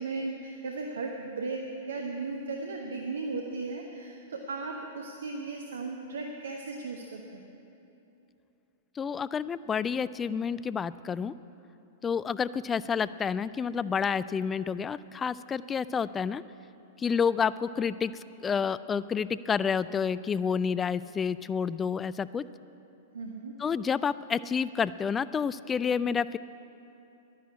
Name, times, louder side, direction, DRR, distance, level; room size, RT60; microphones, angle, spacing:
voice 1, 0.0-1.6 1.9-7.5 23.1-23.5, right 3 dB, 75° right, 2 dB, 1.1 m, -36 dB
voice 2, 9.0-11.3 12.0-16.4 17.0-18.1 18.4-22.4 23.6-26.4, left 6 dB, 20° left, 17 dB, 0.3 m, -29 dB
11.0 x 10.5 x 8.6 m, 2.9 s
figure-of-eight pair, 105°, 0 cm